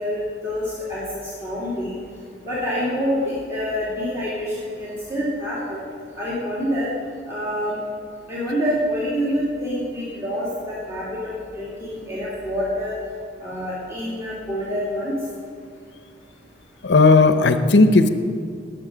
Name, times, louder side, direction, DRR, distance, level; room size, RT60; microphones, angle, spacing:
voice 1, 0.0-2.0 2.4-5.8 6.2-6.9 7.3-7.8 8.3-12.9 13.4-15.1, equal, 15° right, -8 dB, 2.7 m, -26 dB
voice 2, 16.8-18.1, left 3 dB, 70° left, 9 dB, 0.7 m, -14 dB
19.0 x 7.5 x 5.0 m, 2.3 s
head